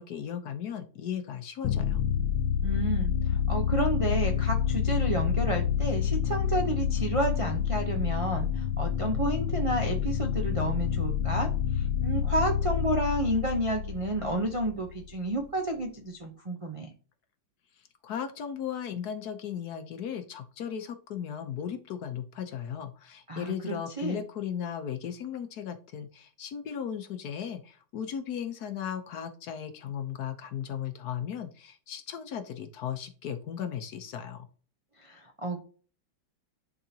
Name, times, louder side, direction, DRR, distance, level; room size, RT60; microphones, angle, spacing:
voice 1, 0.0-2.0 18.0-34.5, left 8 dB, 65° left, 8 dB, 1.1 m, -36 dB
sound 1, 1.6-15.1, left 8 dB, 85° left, 1.4 m, -28 dB
voice 2, 2.6-16.9 23.3-24.2 35.0-35.6, right 1 dB, 60° right, 2 dB, 0.3 m, -31 dB
11.0 x 3.7 x 2.8 m, 0.39 s
omnidirectional pair, 2.1 m